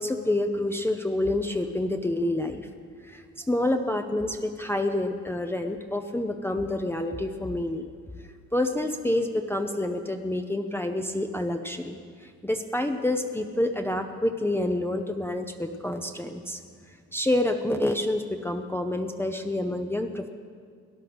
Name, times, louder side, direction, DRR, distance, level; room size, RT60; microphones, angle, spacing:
voice 1, 0.0-2.7 3.0-7.9 8.5-16.6 17.1-20.3, left 1 dB, 10° left, 4 dB, 0.7 m, -28 dB
17.0 x 10.5 x 6.2 m, 2.2 s
cardioid pair, 90°, 30 cm